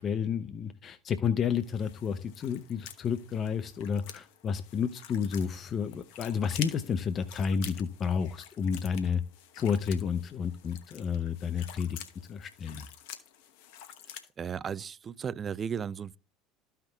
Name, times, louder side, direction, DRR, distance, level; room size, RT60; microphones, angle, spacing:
voice 1, 0.0-9.2 9.5-12.0 12.3-12.9, left 6 dB, 40° left, 0.7 m, -31 dB
sound 1, 1.6-14.3, left 10 dB, 65° left, 1.0 m, -48 dB
voice 2, 14.4-16.2, right 7 dB, 35° right, 0.4 m, -35 dB
13.5 x 5.8 x 2.3 m
figure-of-eight pair, 70°, 0 cm